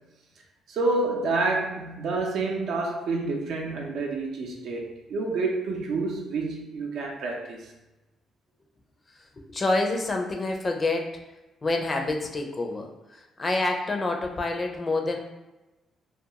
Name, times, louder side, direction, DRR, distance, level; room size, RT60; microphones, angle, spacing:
voice 1, 0.7-7.7, right 3 dB, 75° right, 1 dB, 0.5 m, -28 dB
voice 2, 9.4-11.1 11.6-15.2, left 2 dB, 30° left, 3 dB, 0.4 m, -27 dB
2.3 x 2.3 x 2.8 m, 1.0 s
cardioid pair, 90°, 0 cm